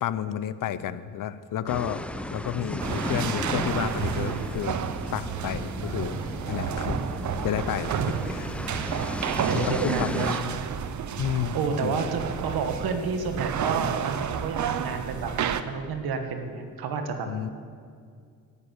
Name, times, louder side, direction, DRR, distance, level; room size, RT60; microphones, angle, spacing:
voice 1, 0.0-2.0 2.3-4.8 5.1-6.2 6.5-7.0 7.4-8.6 9.5-10.3 11.2-12.0 17.3-17.5, left 10 dB, 60° left, 14 dB, 0.6 m, -31 dB
sound 1, 1.7-10.4, left 1 dB, 5° left, 0.5 m, -34 dB
sound 2, 2.8-15.6, right 8 dB, 50° right, 0.7 m, -31 dB
voice 2, 9.4-10.7 11.5-15.3 15.6-17.5, right 5 dB, 75° right, 6 dB, 1.4 m, -31 dB
10.5 x 7.1 x 9.2 m, 2.2 s
cardioid pair, 95°, 37 cm